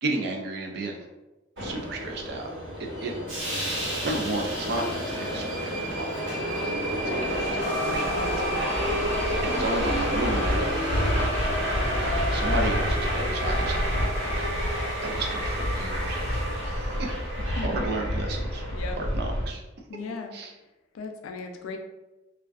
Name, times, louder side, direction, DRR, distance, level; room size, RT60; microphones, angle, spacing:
voice 1, 0.0-1.0 1.6-2.5 2.8-3.1 3.7-6.8 7.0-8.1 8.4-8.8 9.4-11.6 12.3-13.7 14.8-17.2 17.4-18.6 19.0-19.6 20.3-20.5, right 2 dB, 50° right, 2 dB, 0.4 m, -33 dB
Subway metro underground, 1.6-19.5, equal, 80° right, 1.3 m, -28 dB
voice 2, 6.9-7.3 8.1-8.7 17.6-17.7 18.7-19.0 19.9-20.3 20.9-21.8, left 4 dB, 85° left, 4 dB, 0.3 m, -37 dB
sound 1, 7.6-17.6, equal, 15° right, 1.0 m, -38 dB
2.4 x 2.3 x 2.3 m, 1.0 s
head